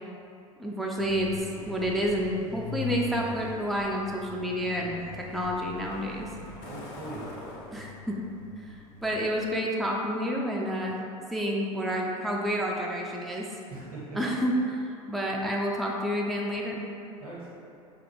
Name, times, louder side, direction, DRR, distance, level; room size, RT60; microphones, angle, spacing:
voice 1, 0.6-1.3 1.7-6.3 7.7-8.2 8.6-11.0 11.3-13.5 14.1-14.5 14.8-16.8, equal, ahead, -2 dB, 0.4 m, -29 dB
Truck, 1.0-9.7, left 5 dB, 55° left, 0.6 m, -42 dB
voice 2, 6.1-7.3 13.7-14.2 17.2-17.5, right 2 dB, 90° right, -7 dB, 1.2 m, -42 dB
4.1 x 2.3 x 3.0 m, 2.7 s
hypercardioid pair, 80°, 18 cm